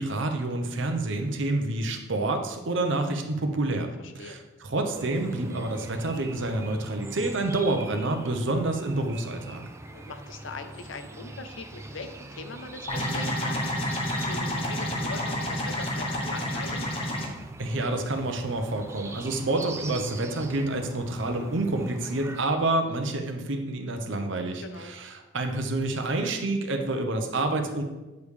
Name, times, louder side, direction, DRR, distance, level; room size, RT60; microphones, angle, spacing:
voice 1, 0.0-9.6 17.6-27.8, right 2 dB, 70° right, 5 dB, 0.8 m, -28 dB
voice 2, 4.0-4.4 9.9-16.9 24.6-24.9, left 3 dB, 70° left, 8 dB, 0.6 m, -41 dB
sound 1, 5.0-22.5, right 2 dB, 15° right, 0.3 m, -43 dB
sound 2, 12.9-17.3, left 1 dB, 25° left, 0.9 m, -29 dB
7.9 x 5.2 x 3.3 m, 1.1 s
head